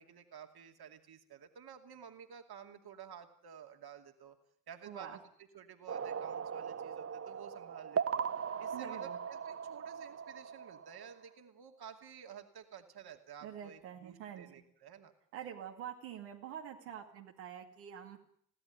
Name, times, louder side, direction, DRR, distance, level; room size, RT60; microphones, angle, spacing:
voice 1, 0.0-4.4 4.7-5.2 5.5-8.3 8.6-15.1, right 8 dB, 50° right, 6 dB, 2.7 m, -52 dB
voice 2, 4.8-5.2 8.7-9.2 13.4-14.5 15.3-18.2, right 9 dB, 80° right, 1 dB, 2.4 m, -46 dB
sound 1, 5.9-11.2, right 7 dB, 30° right, 0.9 m, -39 dB
21.0 x 16.5 x 9.5 m, 0.63 s
hypercardioid pair, 45°, 48 cm